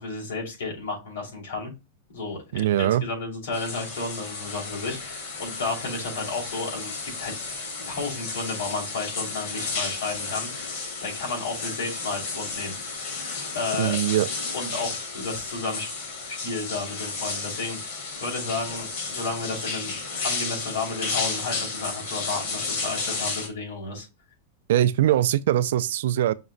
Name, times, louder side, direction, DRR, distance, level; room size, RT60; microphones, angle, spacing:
voice 1, 0.0-1.7 2.1-7.3 7.9-10.5 11.0-12.7 13.5-14.0 14.5-15.9 16.3-20.0 20.2-24.1, left 3 dB, 65° left, 2.6 m, -32 dB
voice 2, 2.5-3.0 13.8-14.3 24.7-26.3, right 12 dB, 60° right, 0.3 m, -22 dB
sound 1, 3.5-23.5, left 4 dB, 45° left, 1.3 m, -33 dB
5.8 x 2.1 x 3.8 m
supercardioid pair, 175°, 0 cm